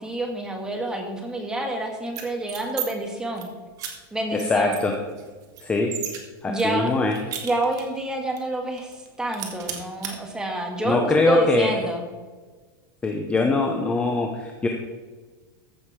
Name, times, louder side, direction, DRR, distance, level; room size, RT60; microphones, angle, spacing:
voice 1, 0.0-3.5 4.1-4.8 6.5-6.9 7.4-8.9 9.2-12.0, right 2 dB, 5° right, 2 dB, 1.6 m, -27 dB
sound 1, 2.1-2.9 3.2-3.5 3.8-3.9 4.4-4.5 4.7-6.2 6.6-8.0 8.4-8.5 8.8-9.1 9.3-10.1, right 9 dB, 30° right, 1.7 m, -34 dB
voice 2, 4.3-4.9 5.6-5.9 6.4-7.1 10.8-11.7 13.0-14.7, left 3 dB, 10° left, 3 dB, 0.8 m, -22 dB
14.5 x 6.6 x 4.8 m, 1.3 s
supercardioid pair, 165°, 12 cm